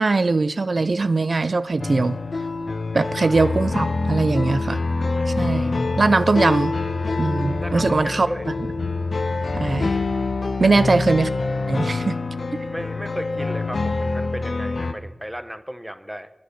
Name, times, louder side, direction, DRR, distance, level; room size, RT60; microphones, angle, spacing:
voice 1, 0.0-2.2 2.9-4.8 5.3-5.7 6.0-6.7 7.2-8.3 9.5-10.0 10.6-11.3 11.7-12.2 12.5-12.6, right 3 dB, 70° right, 14 dB, 0.5 m, -20 dB
sound 1, 1.8-14.9, left 3 dB, 80° left, 1.0 m, -25 dB
voice 2, 2.9-3.4 4.7-5.3 7.6-8.5 10.6-10.8 12.7-16.3, equal, 5° right, 11 dB, 0.9 m, -35 dB
22.0 x 7.6 x 6.9 m, 0.99 s
wide cardioid pair, 75°, 0 cm